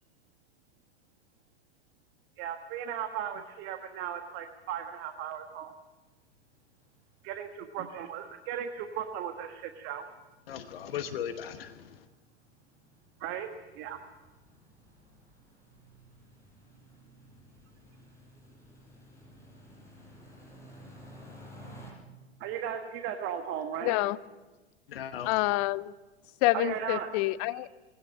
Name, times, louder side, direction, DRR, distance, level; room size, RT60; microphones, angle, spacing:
voice 1, 2.4-5.7 7.2-10.0 13.2-14.0 22.4-24.0 26.5-27.1 27.5-27.7, right 9 dB, 35° right, 7 dB, 1.5 m, -36 dB
sound 1, 4.8-4.9 5.2-5.4 5.7-5.8 6.1-21.9, equal, 10° left, 7.7 m, -55 dB
voice 2, 10.5-12.1 24.9-25.3, left 9 dB, 60° left, 9 dB, 1.2 m, -37 dB
voice 3, 23.8-24.2 25.3-25.9 26.4-27.7, left 18 dB, 35° left, 17 dB, 0.7 m, -27 dB
20.0 x 17.0 x 8.9 m, 1.2 s
figure-of-eight pair, 95°, 33 cm